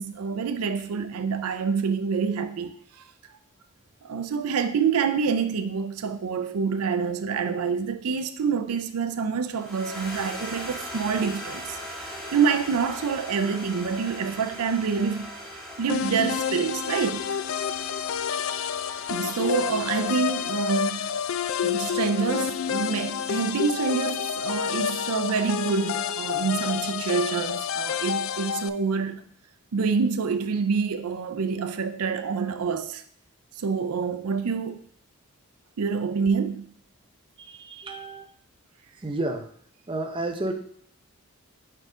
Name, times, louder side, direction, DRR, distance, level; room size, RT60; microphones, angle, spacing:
voice 1, 0.0-3.0 4.0-11.8 12.3-15.3 15.8-17.4 19.1-21.1 21.6-29.2 29.7-33.0 33.6-34.8 35.8-36.7, right 5 dB, 90° right, 0.5 m, -27 dB
sound 1, 9.5-23.9, equal, 5° left, 1.6 m, -41 dB
sound 2, 15.9-28.7, left 8 dB, 65° left, 0.3 m, -29 dB
voice 2, 37.4-38.2 39.0-39.5 39.9-40.5, right 2 dB, 25° right, 0.6 m, -31 dB
4.8 x 4.5 x 4.9 m
head